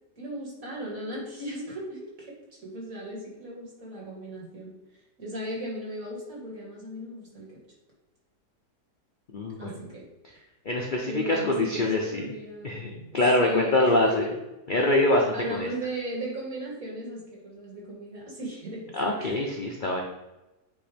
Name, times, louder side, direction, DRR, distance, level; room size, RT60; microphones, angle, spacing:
voice 1, 0.2-2.3 2.6-4.7 5.2-7.6 9.6-10.0 11.1-12.9 13.4-14.4 15.3-18.8 19.2-19.3, equal, 50° right, -4 dB, 2.5 m, -36 dB
voice 2, 9.3-9.8 10.7-12.2 12.6-14.2 14.7-15.7 18.9-20.0, left 1 dB, 55° left, 0 dB, 0.5 m, -24 dB
8.8 x 3.1 x 5.0 m, 1.0 s
omnidirectional pair, 1.9 m